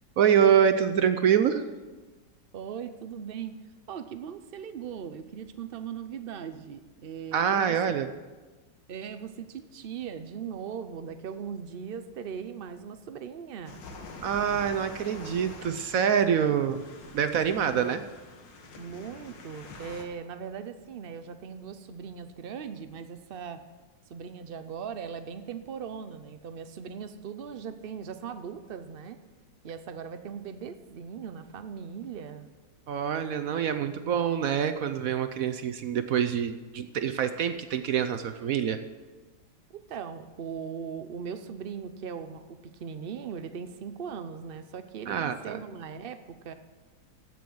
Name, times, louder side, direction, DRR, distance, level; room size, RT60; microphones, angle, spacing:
voice 1, 0.2-1.6 7.3-8.1 14.2-16.8 17.1-18.0 32.9-38.8 45.1-45.6, right 8 dB, 65° right, 9 dB, 0.9 m, -25 dB
voice 2, 2.5-3.5 3.9-7.9 8.9-13.8 17.7-18.0 18.8-23.6 24.1-29.2 29.6-32.5 39.7-46.5, right 7 dB, 80° right, 10 dB, 0.5 m, -39 dB
sound 1, 13.7-20.1, left 2 dB, 85° left, 2.1 m, -46 dB
15.0 x 6.3 x 7.7 m, 1.3 s
omnidirectional pair, 1.9 m